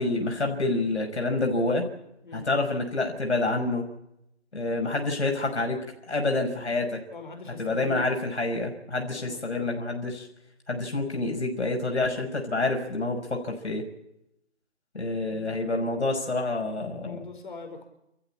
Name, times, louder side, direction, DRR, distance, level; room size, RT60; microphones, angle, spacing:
voice 1, 0.0-1.9 2.3-3.9 4.5-5.8 6.1-7.0 7.6-10.3 10.7-13.8 14.9-17.2, left 2 dB, 75° left, 2 dB, 5.8 m, -27 dB
voice 2, 7.1-8.0 9.1-9.4 15.2-15.6 17.0-17.8, left 3 dB, 45° left, 5 dB, 5.2 m, -41 dB
29.5 x 14.5 x 8.7 m, 0.81 s
figure-of-eight pair, 165°, 34 cm